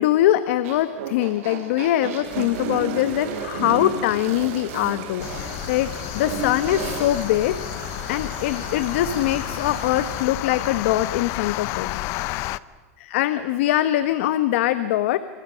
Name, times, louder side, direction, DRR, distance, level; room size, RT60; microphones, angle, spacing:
voice 1, 0.0-7.6 8.1-12.3 13.0-15.2, left 13 dB, 60° left, 12 dB, 1.2 m, -23 dB
sound 1, 0.6-7.1, right 5 dB, 70° right, 7.5 m, -32 dB
sound 2, 2.2-10.2, right 9 dB, 45° right, 4.2 m, -40 dB
sound 3, 5.2-12.6, left 18 dB, 35° left, 0.7 m, -31 dB
29.5 x 26.5 x 6.4 m, 1.4 s
supercardioid pair, 160°, 8 cm